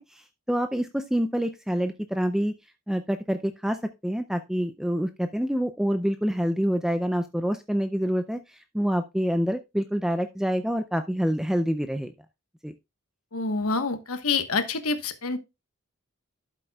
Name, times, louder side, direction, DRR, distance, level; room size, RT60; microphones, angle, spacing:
voice 1, 0.0-2.5 2.9-12.1 12.6-12.7, equal, ahead, 0.4 m, -27 dB
voice 2, 13.3-15.4, left 4 dB, 85° left, 1.3 m, -27 dB
12.0 x 7.5 x 2.3 m
head